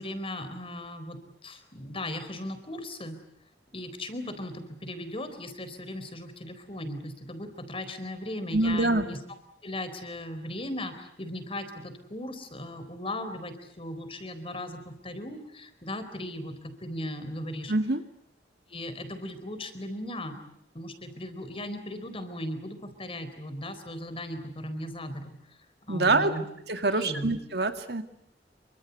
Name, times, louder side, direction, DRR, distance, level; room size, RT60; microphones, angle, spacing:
voice 1, 0.0-3.2 3.7-9.2 9.6-17.7 18.7-20.4 20.7-26.4 26.9-27.4, left 1 dB, 30° left, 10 dB, 4.2 m, -37 dB
voice 2, 8.5-9.1 17.7-18.0 25.9-26.3 26.7-28.0, right 2 dB, 65° right, 7 dB, 2.3 m, -25 dB
27.5 x 25.0 x 8.2 m, 0.74 s
head